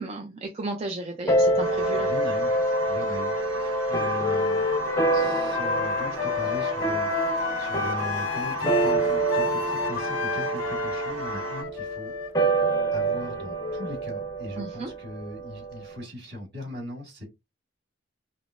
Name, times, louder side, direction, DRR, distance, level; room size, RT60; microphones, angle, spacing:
voice 1, 0.0-2.1 14.6-14.9, right 2 dB, 30° right, 0.5 m, -34 dB
sound 1, 1.3-16.0, right 2 dB, 15° left, 0.7 m, -27 dB
sound 2, 1.6-11.6, equal, 80° right, 0.9 m, -34 dB
voice 2, 1.9-2.6 2.9-12.1 12.9-17.3, left 1 dB, 55° right, 1.9 m, -39 dB
Wind instrument woodwind instrument, 4.2-14.0, left 6 dB, 85° left, 0.5 m, -32 dB
5.3 x 2.0 x 2.5 m
head